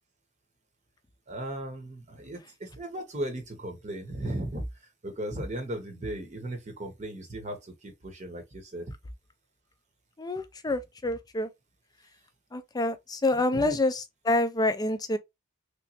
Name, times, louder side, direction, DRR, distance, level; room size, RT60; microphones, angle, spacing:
voice 1, 1.3-8.9 13.5-13.8, right 1 dB, 30° right, 0.8 m, -36 dB
voice 2, 10.2-11.5 12.5-15.2, left 2 dB, 20° left, 0.4 m, -27 dB
3.3 x 3.0 x 2.7 m
head